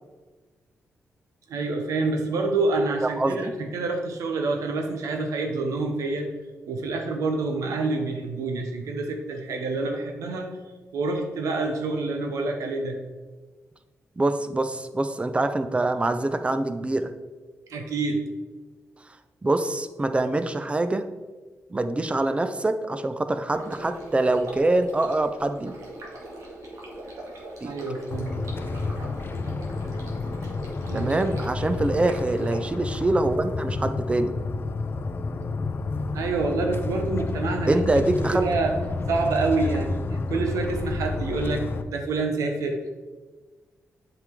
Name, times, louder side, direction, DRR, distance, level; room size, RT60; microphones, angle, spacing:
voice 1, 1.5-6.3 6.6-10.5 10.9-13.0 17.7-18.2 27.6-28.3 30.9-31.3 36.1-38.0 38.3-38.7 39.1-42.9, right 3 dB, 90° right, 4 dB, 1.0 m, -27 dB
voice 2, 3.0-3.5 14.2-17.1 19.4-21.1 21.7-25.7 27.6-27.7 30.9-34.3 37.7-38.4, right 2 dB, 20° right, 10 dB, 0.6 m, -24 dB
Stream, 23.5-32.6, right 1 dB, 70° right, 1.9 m, -41 dB
sound 1, 28.1-41.8, left 3 dB, 40° left, 0.5 m, -30 dB
7.9 x 5.1 x 3.6 m, 1.3 s
cardioid pair, 85°, 5 cm